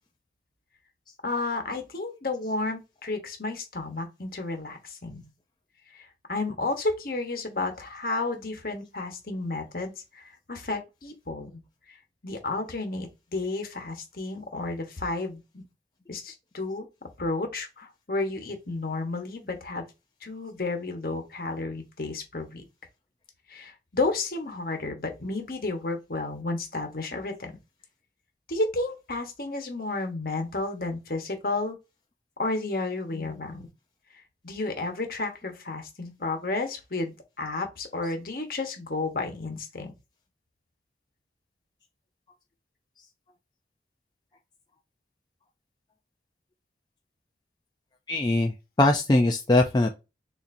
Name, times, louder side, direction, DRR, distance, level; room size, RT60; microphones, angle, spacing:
voice 1, 1.2-5.3 5.9-11.5 11.9-12.0 12.2-15.6 16.1-16.9 17.2-19.8 20.2-22.6 23.5-27.5 28.5-31.8 32.4-33.7 34.1-39.9, left 2 dB, 55° left, 1.1 m, -32 dB
voice 2, 48.1-48.5 48.8-49.9, left 2 dB, 25° left, 0.4 m, -21 dB
6.7 x 2.7 x 2.6 m
head